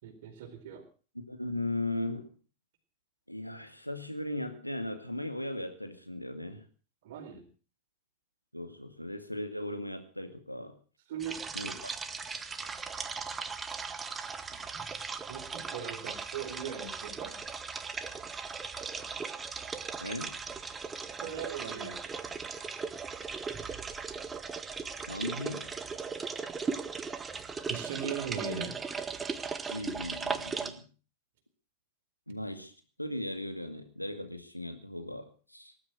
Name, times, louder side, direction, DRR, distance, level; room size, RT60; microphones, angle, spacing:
voice 1, 0.0-0.8 7.0-7.4 11.1-11.7 15.3-17.4 21.2-22.0 27.7-28.8, right 7 dB, 55° right, 6 dB, 4.3 m, -39 dB
voice 2, 1.3-2.4 3.3-6.7 8.5-10.8 11.5-11.9 20.0-20.4 25.1-25.8 29.7-30.9 32.3-32.7 33.0-35.7, left 1 dB, 90° left, 8 dB, 2.2 m, -37 dB
sound 1, 11.2-30.7, right 5 dB, 15° right, 1.7 m, -38 dB
19.5 x 11.5 x 6.3 m, 0.38 s
figure-of-eight pair, 90°, 0 cm